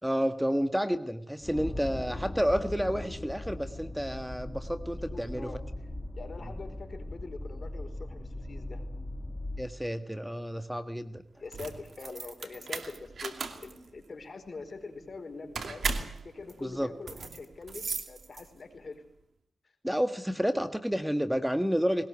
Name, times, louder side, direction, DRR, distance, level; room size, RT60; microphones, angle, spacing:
voice 1, 0.0-5.5 9.6-11.2 16.6-16.9 19.8-22.1, equal, 5° right, 10 dB, 1.6 m, -30 dB
Distant Ancient Machinery, 1.4-9.7, left 1 dB, 25° left, 3.4 m, -39 dB
voice 2, 5.1-5.6 6.1-8.8 11.4-15.8 16.2-19.0, left 3 dB, 55° left, 7 dB, 4.8 m, -44 dB
sound 1, 11.4-18.8, right 4 dB, 75° right, 2.6 m, -37 dB
21.0 x 19.5 x 9.7 m, 0.70 s
cardioid pair, 55°, 0 cm